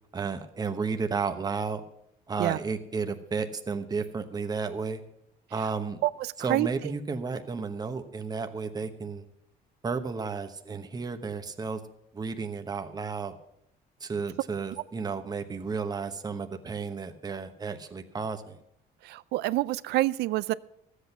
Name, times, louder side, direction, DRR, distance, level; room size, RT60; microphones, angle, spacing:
voice 1, 0.1-1.8 2.3-5.0 5.5-6.0 6.4-9.2 9.8-11.8 12.1-13.3 14.0-18.6, right 5 dB, 25° right, 7 dB, 1.0 m, -32 dB
voice 2, 19.0-20.5, right 17 dB, 80° right, 19 dB, 0.4 m, -26 dB
13.0 x 8.2 x 6.8 m, 0.78 s
cardioid pair, 110°, 17 cm